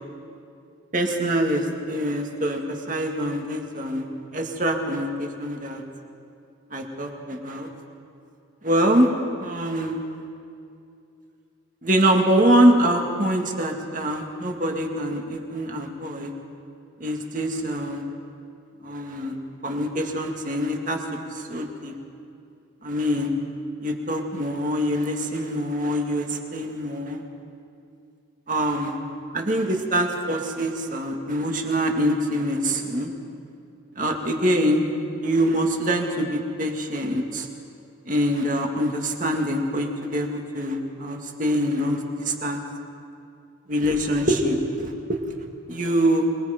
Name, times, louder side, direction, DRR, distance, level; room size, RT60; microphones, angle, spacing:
voice 1, 0.9-2.6 2.9-4.1 4.3-5.8 6.7-7.7 8.6-9.1 9.4-10.0 11.8-16.3 17.0-18.0 18.8-19.4 19.6-21.9 22.8-23.3 23.8-27.2 28.5-29.0 29.3-33.1 34.0-34.8 35.2-37.5 38.1-42.6 43.7-45.2 45.7-46.3, equal, 40° right, 2 dB, 2.1 m, -24 dB
26.5 x 21.0 x 5.2 m, 2.5 s
head